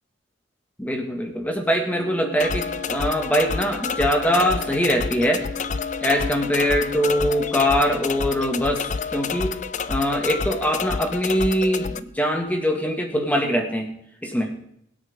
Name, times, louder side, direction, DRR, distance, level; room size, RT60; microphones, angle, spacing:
voice 1, 0.8-5.4 6.0-9.6 9.9-13.9 14.2-14.5, equal, 10° left, 3 dB, 2.0 m, -23 dB
Wind instrument woodwind instrument, 1.8-7.9, left 3 dB, 10° right, 1.9 m, -38 dB
sound 1, 2.4-12.0, left 5 dB, 40° left, 0.5 m, -29 dB
22.5 x 8.5 x 3.7 m, 0.73 s
head